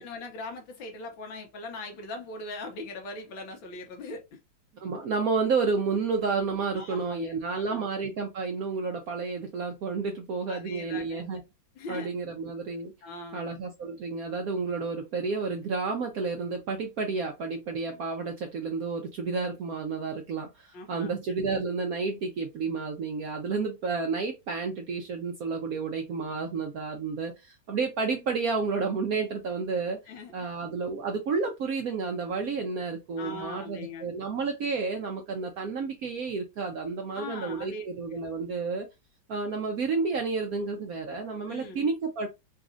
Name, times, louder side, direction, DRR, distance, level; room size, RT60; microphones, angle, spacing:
voice 1, 0.0-4.4 6.7-7.8 10.5-11.2 11.8-12.1 13.0-13.5 17.9-18.0 20.7-21.1 30.1-30.3 33.2-34.1 37.1-37.8 41.5-41.8, left 2 dB, 75° left, 1.7 m, -40 dB
voice 2, 4.8-11.4 11.9-12.9 13.3-30.0 30.3-38.9 39.3-42.3, right 4 dB, 70° right, 0.9 m, -31 dB
4.0 x 2.4 x 2.6 m
omnidirectional pair, 2.2 m